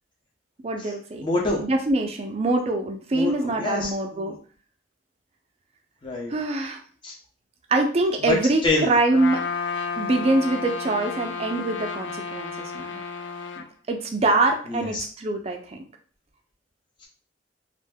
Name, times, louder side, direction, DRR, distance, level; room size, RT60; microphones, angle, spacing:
voice 1, 0.6-1.3 1.6-4.4 6.3-6.8 7.7-9.5 10.0-13.0 13.6-15.8, right 2 dB, 35° right, 3 dB, 0.4 m, -24 dB
voice 2, 1.2-1.6 3.1-4.3 6.0-6.3 7.0-7.1 8.2-8.4 8.6-8.9 14.7-15.1 17.0-17.1, left 2 dB, 30° left, -4 dB, 0.7 m, -26 dB
Trumpet, 9.1-13.7, left 5 dB, 80° left, 0.4 m, -32 dB
2.5 x 2.1 x 3.4 m, 0.42 s
head